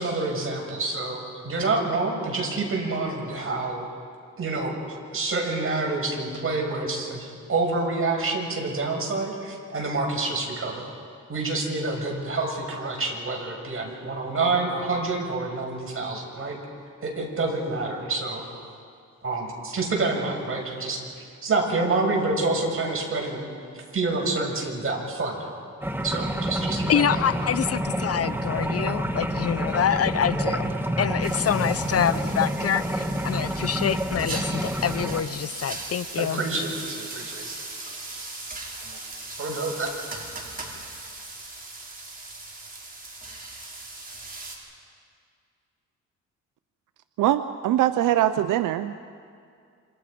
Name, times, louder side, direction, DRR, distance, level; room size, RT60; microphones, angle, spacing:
voice 1, 0.0-3.9 4.4-4.7 5.1-10.8 11.3-16.6 17.0-18.4 19.2-23.4 23.7-25.5 26.0-27.2 36.2-37.6 38.7-39.0 39.4-39.9, right 3 dB, 45° right, 0 dB, 6.6 m, -28 dB
sound 1, 25.8-35.2, equal, 5° right, 1.9 m, -28 dB
voice 2, 26.9-30.7 31.0-36.4, left 8 dB, 50° left, 15 dB, 0.7 m, -26 dB
sound 2, 31.2-44.6, right 2 dB, 30° right, 5.7 m, -39 dB
voice 3, 47.2-48.9, right 12 dB, 85° right, 11 dB, 0.7 m, -22 dB
28.0 x 27.0 x 5.2 m, 2.3 s
cardioid pair, 75°, 31 cm